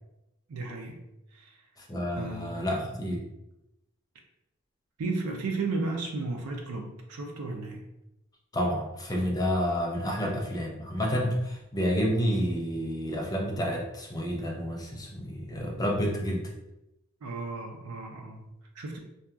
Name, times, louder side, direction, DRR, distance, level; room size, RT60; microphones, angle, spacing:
voice 1, 0.5-1.0 1.3-1.6 2.1-2.7 5.0-7.8 17.2-19.0, right 3 dB, 80° right, 2 dB, 0.4 m, -34 dB
voice 2, 1.9-3.3 8.5-16.5, equal, 15° left, -1 dB, 0.4 m, -29 dB
2.7 x 2.2 x 2.3 m, 0.89 s
head